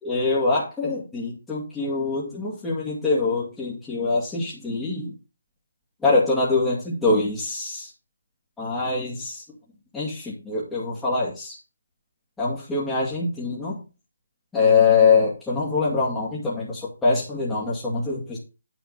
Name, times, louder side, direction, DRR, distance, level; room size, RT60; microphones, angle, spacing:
voice 1, 0.0-5.1 6.0-7.9 8.6-9.4 9.9-11.6 12.4-13.8 14.5-18.4, left 4 dB, 5° left, -8 dB, 2.5 m, -23 dB
9.5 x 4.3 x 5.6 m, 0.30 s
figure-of-eight pair, 150°, 0 cm